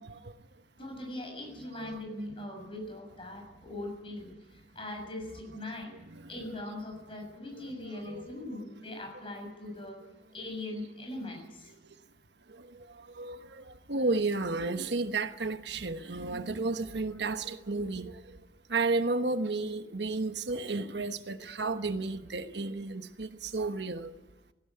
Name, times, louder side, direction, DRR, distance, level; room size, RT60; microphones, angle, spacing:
voice 1, 0.8-4.3 4.8-6.0 6.3-10.0 10.3-11.7, left 1 dB, 30° left, 7.0 m, -40 dB
voice 2, 7.6-8.3 12.6-12.7 13.1-18.2 18.7-24.1, right 3 dB, 75° right, 1.1 m, -32 dB
18.0 x 16.0 x 9.8 m
head